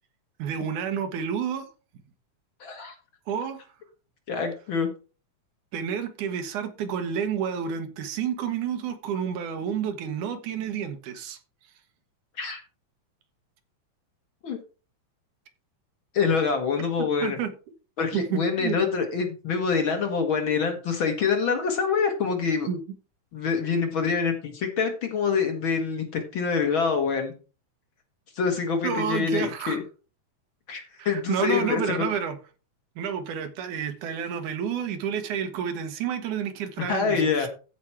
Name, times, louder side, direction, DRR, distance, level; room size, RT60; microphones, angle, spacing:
voice 1, 0.4-1.7 3.3-3.6 5.7-11.4 17.2-17.5 18.1-18.8 22.7-22.8 28.8-29.8 31.0-32.4 33.0-37.5, right 8 dB, 90° right, 2.8 m, -30 dB
voice 2, 2.6-2.9 4.3-4.9 12.4-12.6 14.4-14.6 16.1-17.4 18.0-22.7 23.3-27.3 28.4-29.8 30.7-32.1 36.8-37.5, left 5 dB, 50° left, 2.0 m, -26 dB
14.5 x 5.1 x 4.5 m
omnidirectional pair, 3.4 m